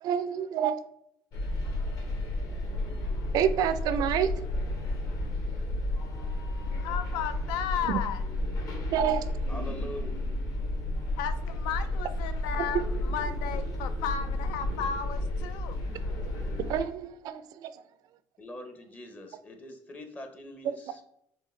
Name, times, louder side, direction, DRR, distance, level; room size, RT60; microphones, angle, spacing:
voice 1, 0.0-0.8 3.3-4.3 7.9-8.0 8.9-9.3 12.6-12.8 16.7-17.7, right 9 dB, 60° right, 0.4 m, -27 dB
sound 1, 1.3-16.8, left 1 dB, 55° left, 1.1 m, -32 dB
voice 2, 6.8-8.2 11.2-15.8, left 8 dB, 85° left, 0.4 m, -34 dB
voice 3, 9.5-10.1 18.4-21.1, left 1 dB, 20° left, 0.6 m, -43 dB
4.7 x 3.1 x 3.1 m
cardioid pair, 140°, 7 cm